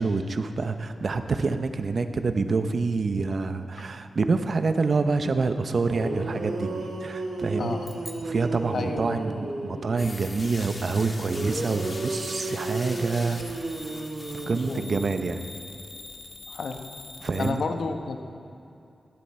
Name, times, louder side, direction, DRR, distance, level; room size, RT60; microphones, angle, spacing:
voice 1, 0.0-6.7 7.0-7.8 8.2-14.0 14.5-15.4 17.2-17.6, right 4 dB, 50° right, 8 dB, 0.8 m, -27 dB
sound 1, 5.9-10.0 11.3-15.3, right 2 dB, 90° right, 2.2 m, -33 dB
voice 2, 7.5-8.0 8.7-9.2 14.7-15.0 16.5-16.9 17.4-18.2, left 4 dB, 70° left, 5 dB, 1.1 m, -31 dB
sound 2, 7.8-9.5, left 1 dB, 10° left, 1.1 m, -48 dB
sound 3, 10.0-17.5, left 2 dB, 35° left, 1.7 m, -42 dB
18.5 x 12.0 x 4.3 m, 2.7 s
wide cardioid pair, 115°, 0 cm